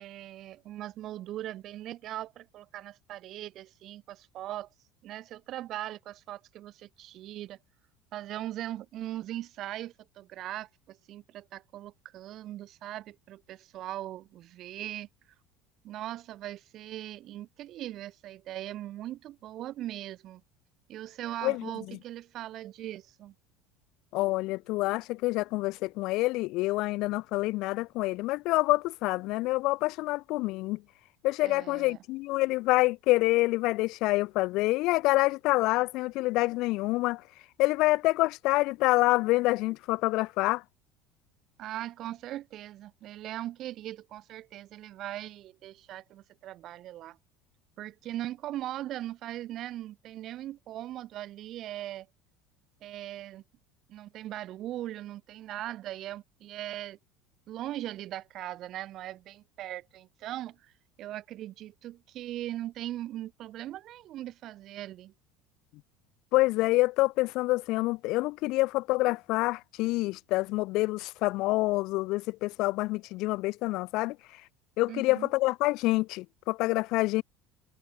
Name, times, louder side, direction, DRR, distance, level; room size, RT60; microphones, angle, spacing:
voice 1, 0.0-4.7 5.0-7.6 8.1-15.1 15.8-20.4 20.9-23.3 31.4-32.0 41.6-47.2 47.8-52.1 52.8-53.4 53.9-57.0 57.5-60.7 61.0-65.1 74.9-75.3, right 13 dB, 45° right, 4.4 m, -40 dB
voice 2, 21.4-22.0 24.1-30.8 31.2-37.2 37.6-40.6 66.3-74.2 74.8-77.2, left 20 dB, 60° left, 1.0 m, -27 dB
cardioid pair, 145°, 0 cm